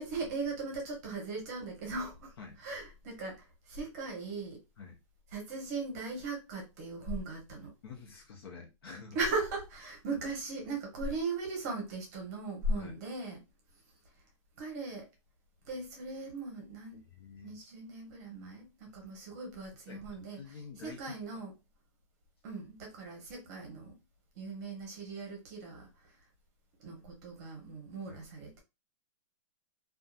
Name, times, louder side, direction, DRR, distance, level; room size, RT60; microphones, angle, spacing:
voice 1, 0.0-4.6 5.3-7.7 9.1-13.4 14.6-15.1 15.6-17.1 17.4-20.4 20.8-21.5 22.4-23.9 24.3-25.9 26.8-28.6, right 3 dB, 30° right, 0.9 m, -38 dB
voice 2, 7.8-9.2 12.7-13.0 17.1-17.6 19.9-20.1 20.4-21.4 28.1-28.2, left 5 dB, 45° left, 0.9 m, -48 dB
2.7 x 2.4 x 2.3 m
hypercardioid pair, 170°, 17 cm